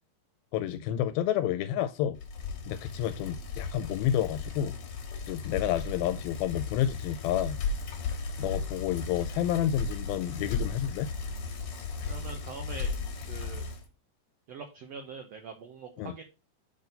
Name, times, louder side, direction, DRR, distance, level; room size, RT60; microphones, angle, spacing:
voice 1, 0.5-2.2 2.7-4.7 5.3-7.6 8.4-11.1 16.0-16.1, left 11 dB, 85° left, 2.3 m, -30 dB
Bicycle, 2.2-13.9, left 4 dB, 60° left, 2.2 m, -36 dB
voice 2, 12.1-13.0 13.3-13.7 14.5-16.2, right 5 dB, 75° right, 1.4 m, -43 dB
6.9 x 4.0 x 5.2 m
omnidirectional pair, 4.2 m